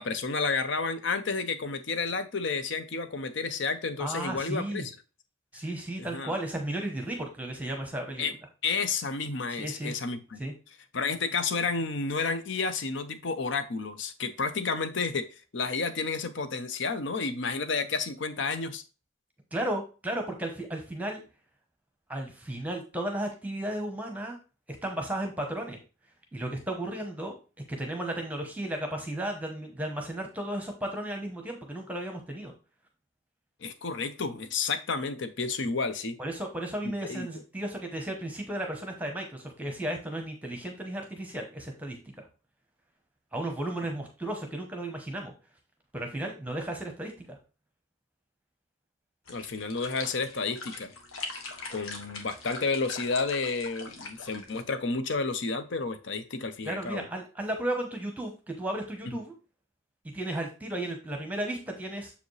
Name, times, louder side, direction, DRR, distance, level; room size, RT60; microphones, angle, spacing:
voice 1, 0.0-4.9 6.0-6.3 8.2-8.3 8.6-10.4 10.9-15.3 15.5-18.8 33.6-36.1 37.1-37.3 49.3-50.9 51.7-57.1, left 4 dB, 60° left, 11 dB, 0.7 m, -31 dB
voice 2, 4.0-4.9 5.5-8.2 9.6-9.9 10.4-10.5 19.5-21.2 22.1-24.4 24.8-25.8 26.3-27.3 27.7-32.5 36.2-42.3 43.3-45.3 45.9-47.4 56.6-59.3 60.1-62.1, right 1 dB, 5° right, 3 dB, 0.9 m, -34 dB
sound 1, 49.3-54.6, left 3 dB, 85° left, 1.3 m, -42 dB
6.8 x 5.0 x 3.2 m, 0.33 s
head